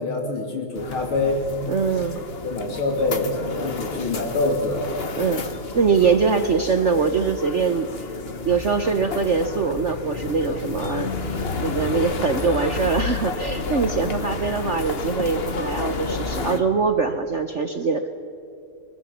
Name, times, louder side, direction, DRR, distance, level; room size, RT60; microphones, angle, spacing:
voice 1, 0.0-1.5 2.4-3.3 3.6-4.9 11.4-11.7 14.0-14.2, left 2 dB, 85° left, 2 dB, 3.9 m, -25 dB
sound 1, 0.8-16.6, left 4 dB, 35° left, 1.0 m, -31 dB
voice 2, 1.7-2.2 5.2-5.4 5.7-7.9 8.4-18.1, right 5 dB, 55° right, 7 dB, 0.8 m, -23 dB
23.5 x 21.0 x 7.2 m, 2.6 s
omnidirectional pair, 2.3 m